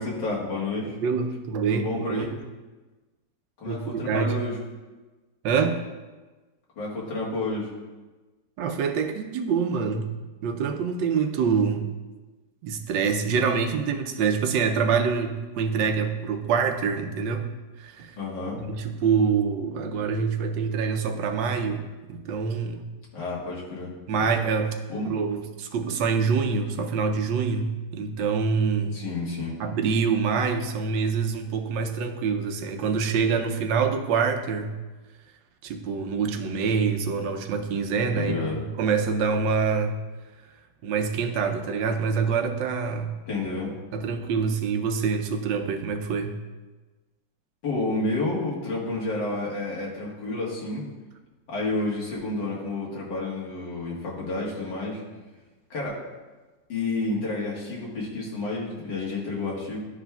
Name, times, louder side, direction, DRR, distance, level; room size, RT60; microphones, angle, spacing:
voice 1, 0.0-0.9 1.7-2.3 3.6-4.5 6.8-7.7 18.2-18.6 23.1-23.9 24.9-25.1 28.9-29.5 38.2-38.6 43.3-43.7 47.6-50.8 51.5-55.0 55.7-56.0 56.7-59.8, left 2 dB, 75° left, -4 dB, 2.1 m, -30 dB
voice 2, 1.0-2.3 3.7-4.4 5.4-5.8 8.6-10.1 10.4-11.9 12.6-17.5 17.8-18.1 18.6-22.8 24.1-24.8 25.1-29.0 29.6-34.8 35.6-40.0 40.8-43.2 43.9-46.4, right 5 dB, 80° right, 5 dB, 1.3 m, -25 dB
12.0 x 4.8 x 2.3 m, 1.2 s
omnidirectional pair, 2.0 m